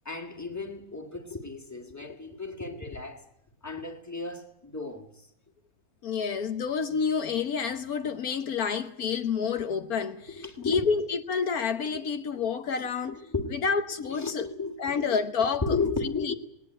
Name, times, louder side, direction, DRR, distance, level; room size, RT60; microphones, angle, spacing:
voice 1, 0.1-3.2 3.6-5.2 10.3-10.8 11.9-12.1 13.0-13.6 14.0-15.0 15.6-16.3, left 3 dB, 10° left, 2.2 m, -34 dB
voice 2, 6.0-13.2 13.5-14.5 14.8-15.8 16.0-16.3, left 6 dB, 70° left, 1.5 m, -29 dB
19.5 x 19.0 x 9.1 m
omnidirectional pair, 1.6 m